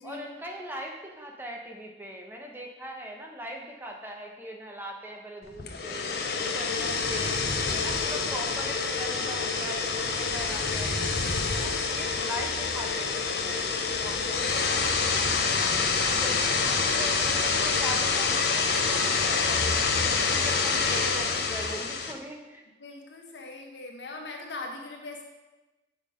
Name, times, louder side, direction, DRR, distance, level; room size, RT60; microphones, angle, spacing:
voice 1, 0.0-6.0 6.4-7.4 7.7-11.1 11.5-15.7 16.1-19.9 20.3-22.6, equal, 10° right, 0 dB, 0.9 m, -40 dB
sound 1, 5.6-22.1, left 4 dB, 65° left, 0.8 m, -27 dB
voice 2, 22.8-25.2, left 2 dB, 80° left, 1 dB, 1.3 m, -41 dB
7.1 x 5.6 x 5.0 m, 1.1 s
head